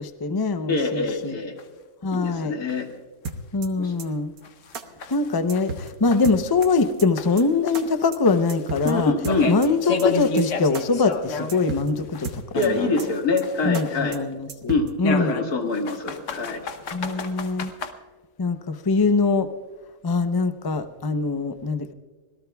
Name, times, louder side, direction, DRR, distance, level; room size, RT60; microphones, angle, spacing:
voice 1, 0.0-1.4 2.0-2.5 3.5-4.3 5.1-9.1 9.5-12.9 13.6-15.4 16.9-17.7 18.4-19.5 20.0-21.9, left 4 dB, 30° left, 10 dB, 0.4 m, -23 dB
voice 2, 0.7-1.5 2.1-2.9 3.8-3.9 8.8-9.6 12.5-14.2 14.7-16.7, left 3 dB, 85° left, 2 dB, 2.4 m, -25 dB
sound 1, 1.1-1.2 1.6-1.7 2.1-2.2 2.7-2.8 3.3-3.4 3.8-3.9 4.4-6.9 7.2-11.8 12.1-14.2 15.0-17.9, left 3 dB, 60° left, 1.2 m, -31 dB
sound 2, 3.2-3.7 4.0-4.1 4.4-4.5 4.7-4.8 5.1-5.2 5.5-5.9 6.2-6.7 7.0-7.1 7.4-7.5 7.7-7.8 8.1-8.2 8.5-8.9 9.2-9.7 10.0-10.1 10.4-10.5 10.7-10.8 11.1-11.2 11.5-11.9 12.2-12.7 13.0-13.1 13.4-13.5 13.7-13.8 14.1-14.2 14.5-14.9, right 4 dB, 75° right, 1.5 m, -33 dB
25.5 x 17.5 x 2.3 m, 1.4 s
omnidirectional pair, 1.6 m